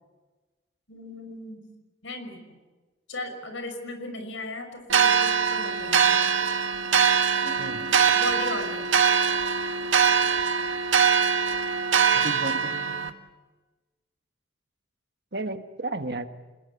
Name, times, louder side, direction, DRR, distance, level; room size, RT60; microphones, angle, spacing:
voice 1, 0.9-1.7 2.0-2.6 3.1-6.3 7.4-7.9 8.1-8.9, left 2 dB, 85° left, 7 dB, 6.1 m, -37 dB
sound 1, 4.9-13.1, right 7 dB, 85° right, 1.6 m, -22 dB
voice 2, 12.1-13.1 15.3-16.3, right 2 dB, 55° right, 8 dB, 1.5 m, -33 dB
28.5 x 20.0 x 8.4 m, 1.2 s
head